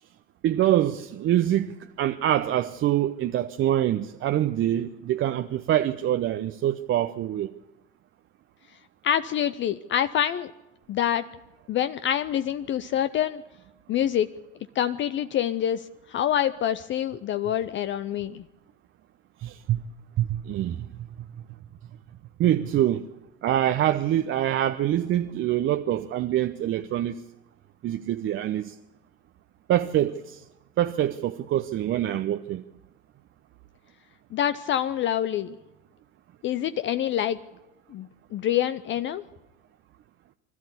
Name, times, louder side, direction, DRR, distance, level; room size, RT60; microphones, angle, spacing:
voice 1, 0.4-7.5 19.4-19.8 20.2-21.1 22.4-23.1 23.4-27.2 27.8-28.8 29.7-30.5 30.8-32.6, right 12 dB, 35° right, 0.8 m, -25 dB
voice 2, 9.0-10.5 10.9-11.2 11.7-13.4 13.9-14.3 14.7-18.4 34.3-35.6 36.4-37.4 37.9-39.2, left 10 dB, 35° left, 0.7 m, -26 dB
24.5 x 13.5 x 8.3 m
figure-of-eight pair, 70°, 33 cm